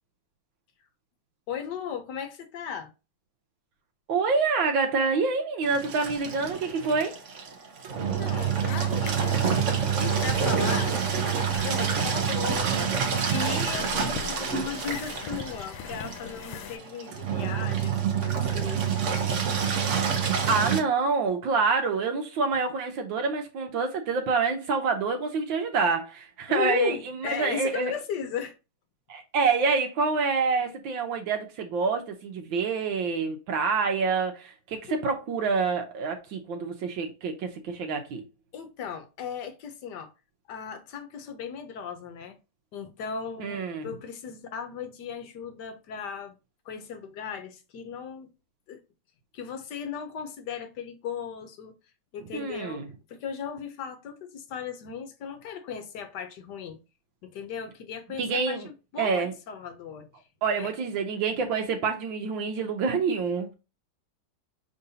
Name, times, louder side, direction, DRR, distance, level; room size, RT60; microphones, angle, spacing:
voice 1, 1.5-2.9 8.0-9.6 10.2-12.7 13.3-18.8 26.5-28.6 34.9-35.0 38.5-40.1 40.5-42.4 42.7-46.4 46.6-48.3 48.7-48.8 49.3-51.7 52.1-52.8 53.1-56.8 57.2-60.1 60.6-60.7, left 7 dB, 65° left, 1.2 m, -36 dB
voice 2, 4.1-7.2 20.5-27.9 29.1-38.2 43.4-43.9 52.3-52.9 58.2-58.7 59.0-59.3 60.4-63.5, right 4 dB, 75° right, 1.5 m, -27 dB
Engine, 5.7-20.8, right 7 dB, 60° right, 0.8 m, -27 dB
sound 1, 8.4-16.8, left 9 dB, 85° left, 1.4 m, -41 dB
5.2 x 3.7 x 2.7 m
omnidirectional pair, 2.2 m